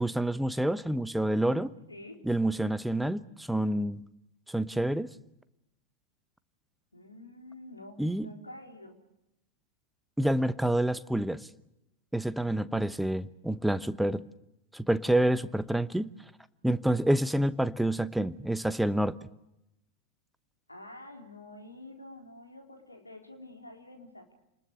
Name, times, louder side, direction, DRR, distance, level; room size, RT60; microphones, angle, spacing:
voice 1, 0.0-1.7 2.2-4.0 4.5-5.1 8.0-8.3 10.2-11.5 12.1-14.2 14.7-16.1 16.6-19.2, right 1 dB, 5° right, 15 dB, 0.9 m, -28 dB
voice 2, 1.9-2.2 6.9-9.0 20.7-24.3, left 1 dB, 80° left, 3 dB, 4.1 m, -48 dB
29.5 x 20.5 x 6.8 m, 0.87 s
figure-of-eight pair, 90°, 0 cm